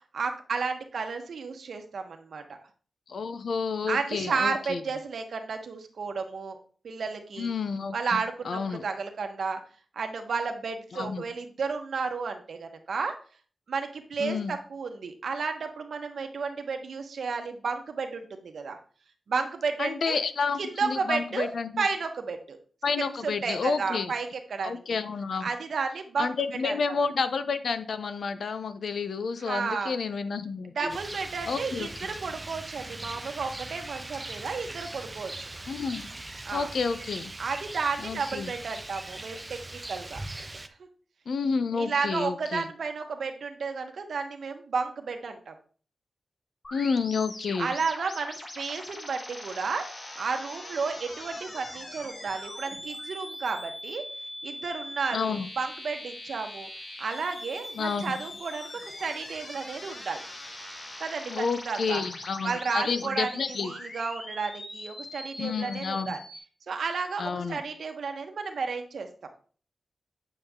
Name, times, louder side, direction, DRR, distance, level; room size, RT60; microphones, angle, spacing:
voice 1, 0.1-2.4 3.9-6.6 6.8-7.5 7.9-9.6 9.9-13.1 13.7-18.8 19.3-20.2 20.6-21.5 21.8-22.6 23.2-25.0 25.4-26.3 26.6-26.7 29.4-29.9 30.7-35.5 36.4-36.7 37.4-40.2 40.8-40.9 41.7-45.5 47.6-49.8 50.1-54.0 54.4-56.7 57.0-60.2 61.0-62.0 62.4-63.3 63.6-66.2 66.7-69.1, right 5 dB, 70° right, 5 dB, 1.3 m, -32 dB
voice 2, 3.1-4.8 7.4-8.8 10.9-11.2 14.2-14.6 19.8-21.9 22.8-24.1 24.6-25.5 26.2-30.9 31.5-31.9 35.7-36.1 36.5-37.3 38.0-38.5 41.3-42.7 46.7-47.7 55.1-55.5 57.7-58.2 61.3-63.7 65.4-66.2 67.2-67.6, left 5 dB, 70° left, 11 dB, 0.7 m, -30 dB
Rain, 30.9-40.7, right 2 dB, 20° right, 0.6 m, -40 dB
sound 1, 46.6-66.4, left 1 dB, 35° left, 1.3 m, -42 dB
8.8 x 6.7 x 3.7 m, 0.42 s
wide cardioid pair, 165°, 0 cm